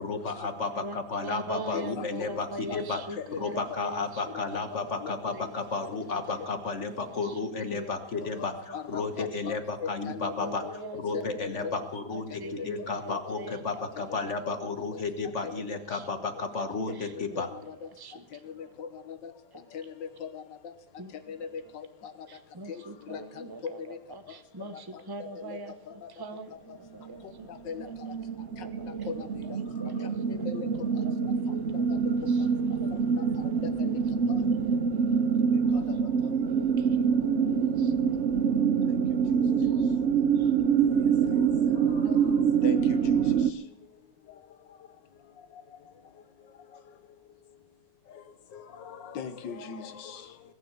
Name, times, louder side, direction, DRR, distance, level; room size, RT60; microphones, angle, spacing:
voice 1, 0.0-3.0 3.4-17.5, left 4 dB, 45° left, 1.4 m, -33 dB
voice 2, 0.8-4.2 4.5-5.6 6.1-6.5 6.9-7.4 7.7-8.8 10.4-11.7 12.1-13.6 14.0-14.3 15.4-15.6 15.9-16.1 16.9-17.4 18.0-18.4 19.5-19.6 21.0-21.1 22.3-27.5 27.8-28.1 28.6-29.1 29.8-30.1 31.0-31.5 32.0-32.4 32.8-33.6 34.6-35.1 36.5-37.9 40.4-40.5, right 1 dB, 35° right, 0.3 m, -43 dB
voice 3, 1.7-2.1 2.7-2.8 3.2-3.4 5.0-5.1 8.4-8.5 8.7-9.6 9.8-10.5 11.1-11.8 13.1-13.2 14.6-15.0 15.4-15.5 16.9-17.0 17.4-17.6 18.8-19.2 19.7-19.8 20.2-20.4 21.3-21.5 22.0-22.1 22.7-22.8 23.1-23.2 23.9-24.0 25.5-25.6 27.7-27.9 29.1-29.3 30.5-30.7 31.7-31.8 33.2-33.3 33.8-34.0 34.3-34.4 35.7-36.0 42.0-42.1 42.6-43.2 48.9-50.2, left 6 dB, 85° left, 1.8 m, -38 dB
sound 1, 27.1-27.5 27.8-43.5, right 6 dB, 65° right, 0.7 m, -26 dB
20.5 x 7.3 x 8.5 m
omnidirectional pair, 1.9 m